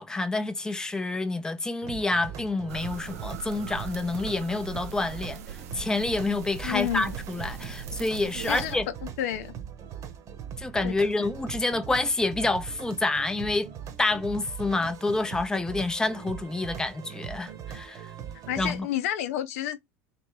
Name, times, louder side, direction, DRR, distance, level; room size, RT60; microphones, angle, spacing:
voice 1, 0.0-8.9 10.6-13.7 14.0-18.1 18.6-18.9, left 2 dB, 10° left, 0.6 m, -28 dB
sound 1, 1.8-18.8, right 9 dB, 45° right, 1.0 m, -41 dB
sound 2, 2.7-8.8, right 7 dB, 90° right, 0.8 m, -40 dB
voice 2, 6.6-7.1 8.4-8.8 9.2-9.5 10.8-11.3 18.5-19.8, left 12 dB, 80° left, 0.7 m, -30 dB
3.4 x 3.2 x 4.6 m
supercardioid pair, 105°, 8 cm